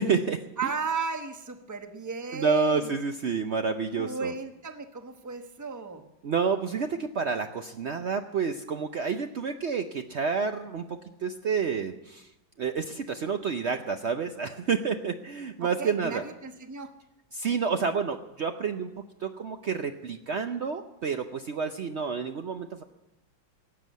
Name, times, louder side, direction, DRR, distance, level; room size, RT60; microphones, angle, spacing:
voice 1, 0.0-0.4 2.3-4.3 6.2-12.3 12.6-16.2 17.3-18.9 19.2-22.8, right 5 dB, 85° right, 6 dB, 0.6 m, -29 dB
voice 2, 0.6-2.9 4.0-6.0 15.6-16.9, right 5 dB, 20° right, 6 dB, 0.5 m, -34 dB
18.0 x 7.8 x 9.2 m, 0.96 s
omnidirectional pair, 2.1 m